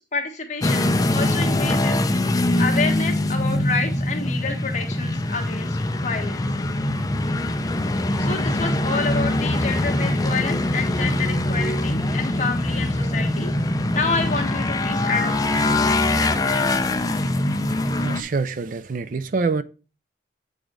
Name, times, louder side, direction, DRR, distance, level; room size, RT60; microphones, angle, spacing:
voice 1, 0.1-0.8 1.1-2.1 2.6-6.4 8.2-13.5 13.9-16.2, left 4 dB, 40° left, 1.4 m, -28 dB
sound 1, 0.6-18.2, left 1 dB, 20° left, 0.5 m, -23 dB
voice 2, 18.0-19.6, right 4 dB, 45° right, 0.4 m, -25 dB
8.0 x 3.8 x 4.7 m
head